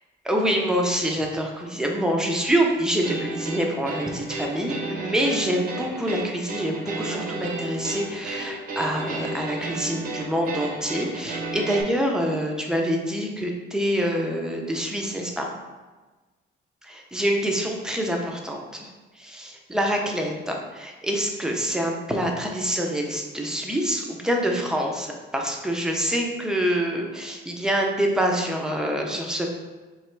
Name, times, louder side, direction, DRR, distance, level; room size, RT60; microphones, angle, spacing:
voice 1, 0.2-15.5 16.9-18.9 19.2-29.6, equal, 5° right, 1 dB, 0.5 m, -26 dB
sound 1, 3.0-11.8, right 2 dB, 45° right, 0.7 m, -33 dB
3.2 x 2.9 x 4.4 m, 1.3 s
cardioid pair, 135°, 20 cm